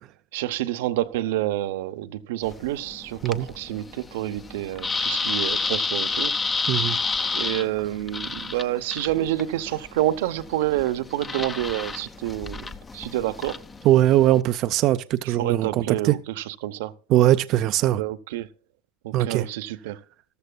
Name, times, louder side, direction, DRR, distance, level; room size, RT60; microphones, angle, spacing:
voice 1, 0.3-6.8 7.3-13.6 15.2-16.9 18.0-18.5 19.0-20.0, right 14 dB, 85° right, 0.7 m, -28 dB
sound 1, 2.4-14.4, left 4 dB, 15° left, 0.5 m, -30 dB
voice 2, 6.7-7.0 13.8-16.2 17.1-18.0 19.1-19.5, right 14 dB, 45° right, 0.4 m, -20 dB
13.5 x 13.0 x 2.2 m
supercardioid pair, 140°, 0 cm